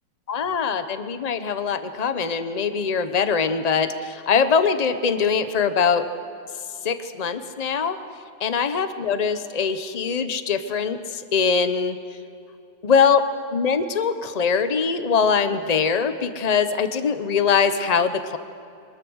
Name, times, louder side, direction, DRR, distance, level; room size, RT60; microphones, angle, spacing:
voice 1, 0.3-6.1 6.8-8.0 8.4-12.0 12.8-13.2 13.5-18.4, left 6 dB, 40° left, 10 dB, 0.6 m, -22 dB
24.5 x 21.0 x 6.4 m, 2.6 s
omnidirectional pair, 2.1 m